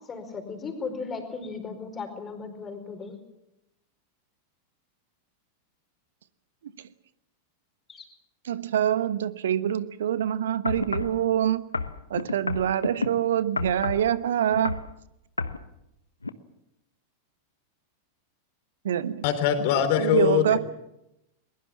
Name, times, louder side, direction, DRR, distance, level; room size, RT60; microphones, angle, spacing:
voice 1, 0.0-3.1 7.9-8.1, left 4 dB, 20° left, 6 dB, 4.8 m, -36 dB
voice 2, 8.4-11.6 12.1-14.7 18.8-19.2 20.0-20.6, right 10 dB, 60° right, 16 dB, 1.1 m, -25 dB
sound 1, 10.7-11.2 11.7-13.1 13.6-14.1 14.5-14.9 15.4-15.6 16.2-16.3, left 3 dB, 80° left, 1.1 m, -30 dB
voice 3, 19.2-20.6, left 9 dB, 50° left, 9 dB, 3.8 m, -22 dB
22.0 x 21.5 x 7.3 m, 0.84 s
figure-of-eight pair, 90°, 0 cm